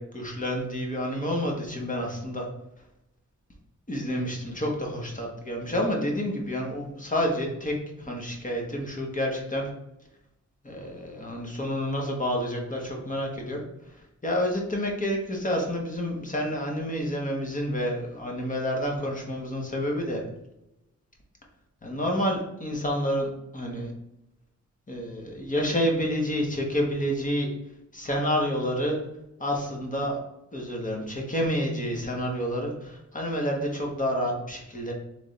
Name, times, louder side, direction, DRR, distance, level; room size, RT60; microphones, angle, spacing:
voice 1, 0.0-2.5 3.9-9.7 10.6-13.6 14.2-20.2 21.8-23.9 24.9-27.5 27.9-29.0 29.4-30.2 30.5-34.9, equal, 25° left, 0 dB, 1.0 m, -29 dB
3.4 x 3.3 x 3.9 m, 0.88 s
wide cardioid pair, 105°, 30 cm